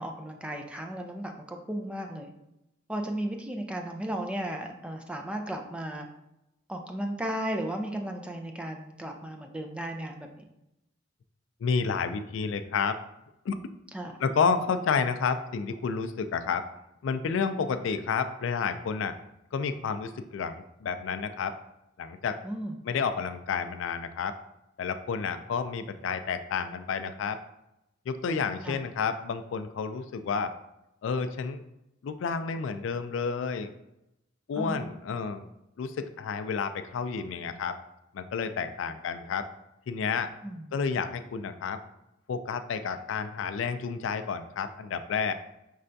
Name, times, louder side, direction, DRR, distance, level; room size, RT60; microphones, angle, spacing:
voice 1, 0.0-2.3 2.9-6.1 6.7-10.3 13.9-14.1 22.4-22.8 28.6-28.8 34.6-34.9 40.4-40.7, right 1 dB, 5° right, 3 dB, 0.4 m, -35 dB
voice 2, 11.6-13.0 13.5-13.7 14.2-16.7 17.0-19.2 19.5-21.6 22.0-22.4 22.8-24.4 24.8-27.4 28.1-30.5 31.0-31.6 32.0-33.7 34.5-35.5 35.8-37.8 38.1-39.5 39.9-40.3 40.7-41.8 42.3-45.3, left 5 dB, 75° left, 10 dB, 0.3 m, -30 dB
5.4 x 3.3 x 2.6 m, 0.86 s
head